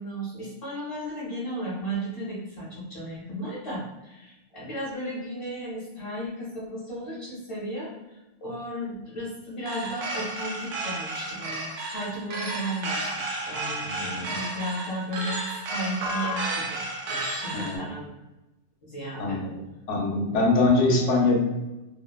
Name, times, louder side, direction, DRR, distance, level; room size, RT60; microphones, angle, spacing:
voice 1, 0.0-13.2 13.5-18.1 18.8-19.4, right 1 dB, 35° left, -8 dB, 0.5 m, -35 dB
sound 1, 9.7-17.8, right 2 dB, 85° right, 0.9 m, -32 dB
voice 2, 13.8-14.3 17.5-17.9 19.2-19.5 19.9-21.4, left 3 dB, 80° left, -1 dB, 1.0 m, -23 dB
2.7 x 2.0 x 2.2 m, 1.0 s
omnidirectional pair, 1.2 m